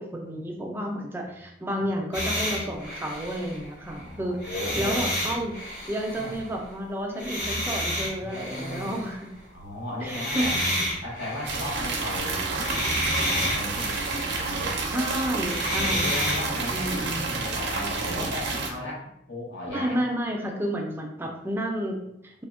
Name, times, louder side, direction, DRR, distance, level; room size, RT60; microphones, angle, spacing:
voice 1, 0.0-4.4 4.8-5.5 5.9-9.3 10.0-10.5 14.9-16.4 16.7-17.2 19.7-22.4, equal, 10° right, 0 dB, 0.3 m, -31 dB
sound 1, 2.1-4.0 4.4-6.5 7.2-9.1 10.0-14.9 15.3-17.0, equal, 65° left, 1.2 m, -30 dB
voice 2, 3.9-5.1 6.1-6.4 8.1-9.0 9.5-10.5 11.0-14.0 14.3-14.7 15.7-20.0, left 1 dB, 85° left, -4 dB, 1.0 m, -36 dB
sound 2, 11.4-18.7, right 3 dB, 60° right, 0.5 m, -30 dB
3.3 x 2.1 x 2.4 m, 0.79 s
head